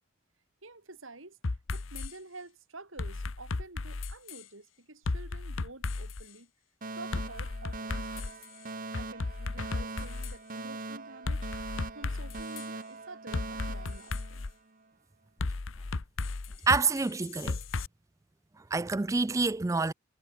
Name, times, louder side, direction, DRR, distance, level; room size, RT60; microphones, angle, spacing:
voice 1, 0.6-1.4 1.7-6.5 6.9-8.5 9.0-11.7 11.9-14.5, right 2 dB, 85° right, 4.7 m, -49 dB
sound 1, 1.4-2.1 3.0-4.4 5.0-6.2 7.1-8.4 8.9-10.4 11.3-12.6 13.3-14.5 15.4-17.9, left 3 dB, 80° left, 0.9 m, -34 dB
Alarm, 6.8-14.8, right 3 dB, 45° right, 1.8 m, -42 dB
voice 2, 16.7-17.6 18.7-19.9, right 4 dB, 15° right, 0.3 m, -27 dB
head